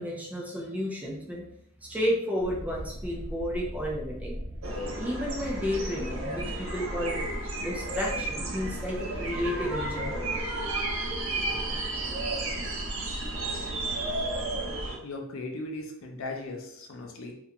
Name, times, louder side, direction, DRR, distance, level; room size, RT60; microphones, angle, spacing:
voice 1, 0.0-1.5 1.8-4.4 5.0-7.3 7.6-10.4, equal, 5° right, -2 dB, 0.4 m, -32 dB
sound 1, 2.4-14.9, equal, 25° right, 0.8 m, -39 dB
sound 2, 4.6-15.0, right 2 dB, 65° right, 0.5 m, -33 dB
voice 2, 15.0-17.4, left 2 dB, 70° left, 1 dB, 0.5 m, -37 dB
2.4 x 2.1 x 2.8 m, 0.77 s
head